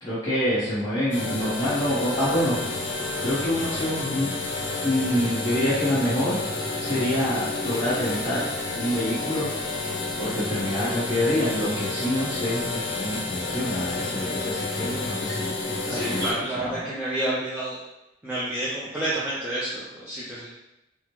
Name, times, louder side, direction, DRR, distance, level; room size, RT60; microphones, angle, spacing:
voice 1, 0.0-2.8 3.2-4.3 4.8-6.4 6.8-8.4 8.7-9.5 10.2-16.9, left 1 dB, 20° left, -14 dB, 1.2 m, -26 dB
sound 1, 1.1-16.3, left 3 dB, 70° left, 0.6 m, -30 dB
voice 2, 15.9-17.8 18.2-20.5, right 1 dB, 10° right, -10 dB, 0.5 m, -29 dB
3.5 x 2.1 x 3.0 m, 0.89 s
head